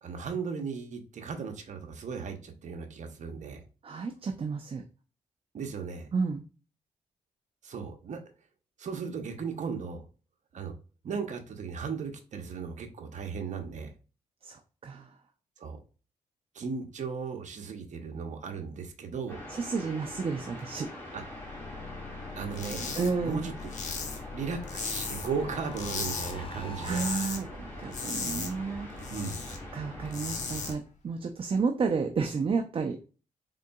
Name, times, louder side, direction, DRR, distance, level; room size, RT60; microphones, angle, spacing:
voice 1, 0.0-3.6 5.5-6.1 7.6-8.2 8.8-10.0 10.5-10.8 11.0-13.9 15.6-15.8 16.5-19.4 21.1-21.2 22.4-23.5 24.3-27.1 29.1-29.4, right 5 dB, 60° right, 5 dB, 0.8 m, -36 dB
voice 2, 3.8-4.8 6.1-6.4 14.4-15.1 19.5-20.9 23.0-23.5 26.8-29.1 29.5-33.0, right 5 dB, 40° right, 5 dB, 0.5 m, -31 dB
sound 1, 19.3-30.7, left 1 dB, 15° left, 1.9 m, -44 dB
sound 2, 21.1-27.3, left 4 dB, 40° left, 0.7 m, -43 dB
sound 3, 22.5-23.1 23.4-25.4 25.7-26.3 26.6-27.4 27.7-29.6 29.9-30.7, left 5 dB, 60° left, 1.0 m, -36 dB
3.7 x 3.7 x 2.3 m, 0.35 s
cardioid pair, 65°, 14 cm